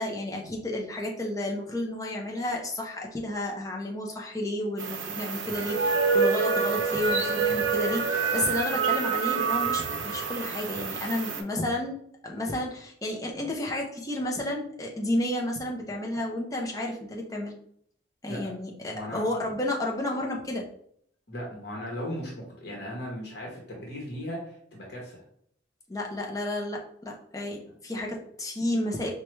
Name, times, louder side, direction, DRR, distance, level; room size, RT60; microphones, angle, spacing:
voice 1, 0.0-12.0 12.2-17.5 18.2-20.7 25.9-29.1, left 1 dB, 15° left, -1 dB, 0.6 m, -31 dB
sound 1, 4.8-11.4, right 5 dB, 70° right, 0.5 m, -27 dB
voice 2, 18.9-19.4 21.3-25.2, equal, 55° left, -2 dB, 1.0 m, -37 dB
4.6 x 2.2 x 3.1 m, 0.66 s
head